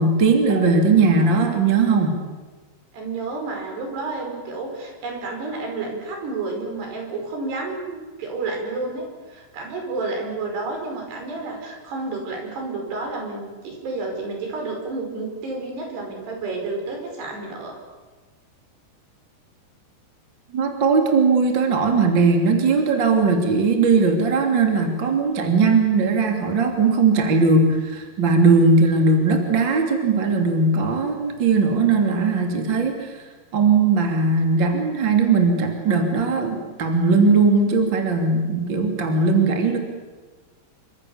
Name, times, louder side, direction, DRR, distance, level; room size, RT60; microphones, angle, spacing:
voice 1, 0.0-2.2 20.5-33.2 33.5-39.8, right 4 dB, 30° right, 4 dB, 2.6 m, -19 dB
voice 2, 2.9-17.8, right 3 dB, 60° right, 2 dB, 7.2 m, -30 dB
28.0 x 24.5 x 7.2 m, 1.3 s
omnidirectional pair, 5.5 m